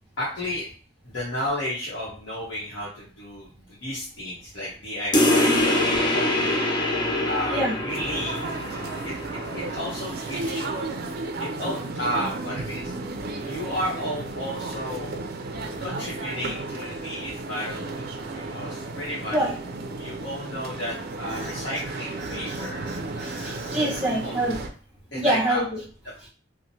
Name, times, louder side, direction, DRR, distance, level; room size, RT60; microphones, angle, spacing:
voice 1, 0.2-0.7 1.0-6.6 7.2-8.4 9.0-9.1 9.5-10.8 11.4-12.9 13.5-15.2 15.8-19.5 20.0-22.8 23.7-23.9 24.2-24.4 25.1-25.6 26.0-26.1, equal, 75° left, -8 dB, 0.9 m, -32 dB
sound 1, 5.1-10.2, left 1 dB, 25° left, 0.5 m, -24 dB
sound 2, 7.9-24.7, right 2 dB, 55° right, 0.4 m, -34 dB
voice 2, 22.3-24.6 25.1-25.6, right 1 dB, 5° right, -5 dB, 1.0 m, -26 dB
2.9 x 2.1 x 2.7 m, 0.39 s
head